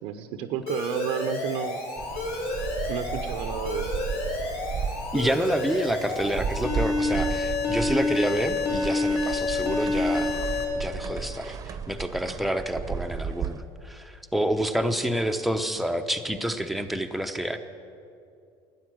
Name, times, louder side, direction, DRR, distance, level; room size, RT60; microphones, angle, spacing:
voice 1, 0.0-1.8 2.9-3.9, right 10 dB, 75° right, 7 dB, 0.8 m, -31 dB
Alarm, 0.7-10.6, left 2 dB, 70° left, 3.6 m, -29 dB
sound 1, 2.0-13.6, right 6 dB, 35° right, 0.8 m, -34 dB
voice 2, 5.1-10.4 10.7-17.6, right 1 dB, ahead, 6 dB, 0.7 m, -28 dB
12.5 x 9.5 x 7.7 m, 2.5 s
supercardioid pair, 120°, 10 cm